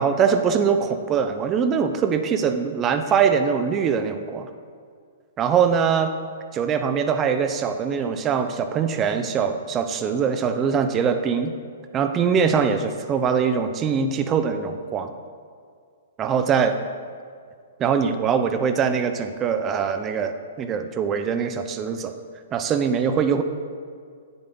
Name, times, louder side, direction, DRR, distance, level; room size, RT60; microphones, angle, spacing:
voice 1, 0.0-4.5 5.4-6.1 6.5-11.5 11.9-15.1 16.2-16.8 17.8-22.1 22.5-23.4, right 6 dB, 20° right, 8 dB, 0.7 m, -22 dB
16.0 x 7.9 x 3.8 m, 2.1 s
hypercardioid pair, 145°, 0 cm